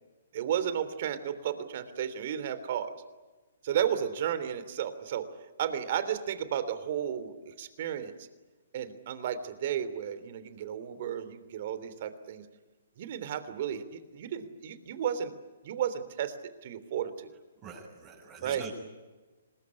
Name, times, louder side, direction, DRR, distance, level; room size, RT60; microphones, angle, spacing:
voice 1, 0.3-2.9 3.6-5.3 5.6-8.3 8.7-12.4 13.0-15.3 15.6-16.4 16.6-17.3 18.4-18.6, right 9 dB, 50° right, 13 dB, 3.2 m, -33 dB
voice 2, 17.6-18.7, right 5 dB, 25° right, -4 dB, 7.4 m, -44 dB
26.5 x 21.0 x 9.9 m, 1.2 s
hypercardioid pair, 140°, 0 cm